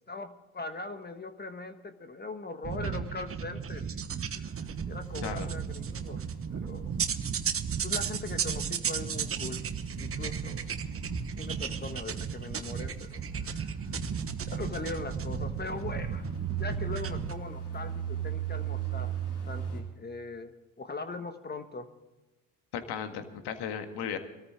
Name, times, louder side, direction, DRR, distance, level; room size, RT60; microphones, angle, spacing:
voice 1, 0.0-4.5 4.9-6.2 6.5-7.0 7.8-9.6 10.0-10.6 11.4-14.0 14.5-16.3 16.5-19.1 19.5-21.9, left 3 dB, 20° left, 8 dB, 1.4 m, -40 dB
sound 1, 2.6-17.3, right 7 dB, 30° right, 1.1 m, -34 dB
sound 2, 4.5-19.8, right 8 dB, 85° left, 3.8 m, -39 dB
voice 2, 22.7-24.2, left 8 dB, 60° left, 7 dB, 1.9 m, -35 dB
22.5 x 13.5 x 3.7 m, 1.1 s
hypercardioid pair, 70°, 45 cm